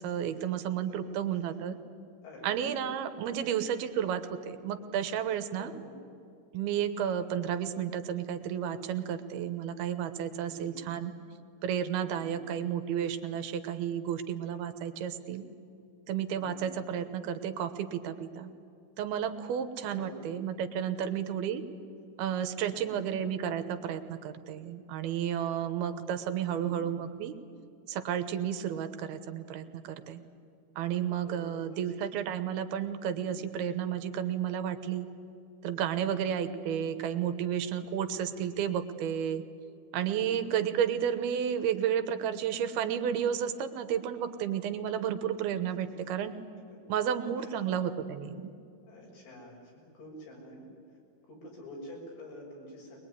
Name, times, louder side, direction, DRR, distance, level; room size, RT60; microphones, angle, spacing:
voice 1, 0.0-1.8 2.4-5.7 6.5-11.1 11.6-15.4 16.1-18.5 19.0-21.6 22.2-27.3 27.9-30.2 30.8-35.1 35.6-39.4 39.9-46.4 46.9-48.5, right 9 dB, 80° right, 9 dB, 3.0 m, -32 dB
voice 2, 2.2-2.6 3.1-3.5 5.6-6.0 10.4-10.8 12.1-12.5 16.3-16.7 19.8-20.2 20.9-21.3 22.7-23.2 26.4-26.7 31.3-31.9 33.2-33.5 36.0-36.3 40.1-40.4 45.8-46.1 46.9-47.0 47.4-47.6 48.9-51.0 51.3-53.0, equal, 85° left, -2 dB, 8.3 m, -49 dB
22.0 x 21.5 x 9.7 m, 2.6 s
omnidirectional pair, 4.5 m